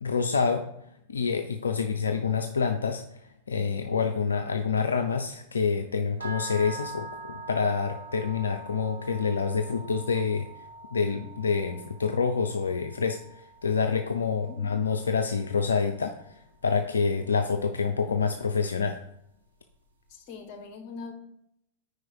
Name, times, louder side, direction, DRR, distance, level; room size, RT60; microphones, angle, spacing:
voice 1, 0.0-0.7 1.1-3.0 3.5-10.5 10.9-19.0, left 5 dB, 80° left, 6 dB, 0.5 m, -27 dB
sound 1, 6.2-16.3, right 2 dB, 75° right, 1.2 m, -44 dB
voice 2, 14.1-14.7 20.1-21.2, left 4 dB, 40° left, 5 dB, 1.5 m, -42 dB
5.0 x 4.7 x 6.2 m, 0.76 s
figure-of-eight pair, 95°, 0 cm